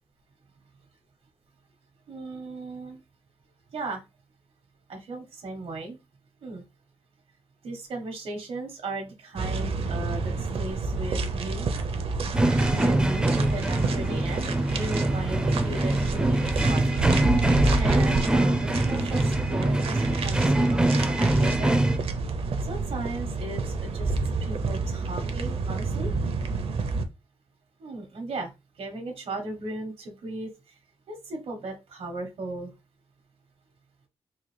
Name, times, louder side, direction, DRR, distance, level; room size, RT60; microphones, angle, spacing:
voice 1, 2.1-3.0 3.7-4.0 4.9-6.0 6.4-6.6 7.6-11.8 12.7-21.8 22.6-24.1 24.4-26.1 27.8-28.5 28.8-30.8 31.1-32.7, right 2 dB, 85° right, 3 dB, 1.1 m, -37 dB
sound 1, 9.4-27.0, right 3 dB, 70° right, 0.6 m, -29 dB
sound 2, 12.3-22.0, right 1 dB, 10° right, 0.4 m, -24 dB
3.8 x 2.6 x 3.2 m, 0.25 s
wide cardioid pair, 145°, 10 cm